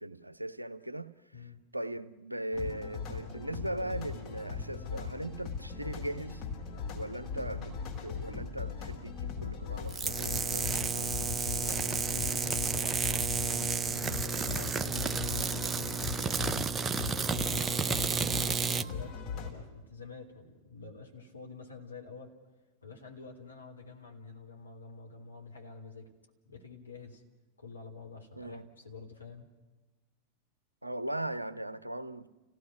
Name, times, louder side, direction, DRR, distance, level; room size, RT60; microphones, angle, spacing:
voice 1, 0.0-6.4 6.9-11.2 28.3-28.7 30.8-32.3, right 1 dB, 85° right, 0.8 m, -39 dB
sound 1, 2.5-19.5, left 6 dB, 40° left, 4.6 m, -39 dB
sound 2, 9.9-18.9, right 5 dB, 20° right, 0.7 m, -31 dB
voice 2, 11.6-16.7 16.9-22.4 22.8-26.1 26.4-27.2 27.6-29.5, left 4 dB, 80° left, 3.3 m, -48 dB
30.0 x 17.0 x 6.1 m
figure-of-eight pair, 90°, 0 cm